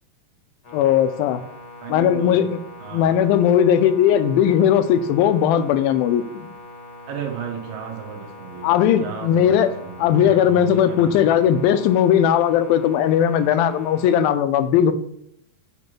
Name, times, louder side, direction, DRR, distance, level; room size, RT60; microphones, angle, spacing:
sound 1, 0.6-14.3, left 2 dB, 55° left, 1.1 m, -42 dB
voice 1, 0.7-1.4 1.9-2.6 2.9-6.5 8.6-9.7 10.0-14.9, left 9 dB, 85° left, 11 dB, 2.3 m, -18 dB
voice 2, 1.8-2.5 2.8-3.3 7.1-11.5, right 7 dB, 75° right, 2 dB, 2.5 m, -35 dB
8.4 x 3.2 x 5.9 m, 0.71 s
omnidirectional pair, 4.2 m